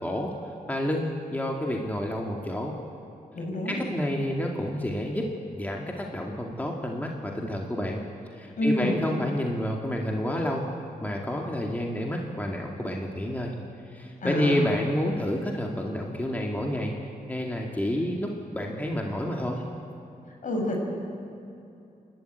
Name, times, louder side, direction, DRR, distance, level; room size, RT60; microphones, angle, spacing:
voice 1, 0.0-0.3 0.7-2.7 3.7-8.0 8.3-10.7 11.0-13.5 13.9-16.9 17.3-19.7, left 1 dB, 10° left, 0 dB, 2.2 m, -29 dB
voice 2, 3.3-3.8 8.6-9.0 14.2-14.6 20.4-20.8, left 1 dB, 60° left, 0 dB, 5.8 m, -28 dB
28.5 x 12.5 x 9.1 m, 2.7 s
wide cardioid pair, 105°, 15 cm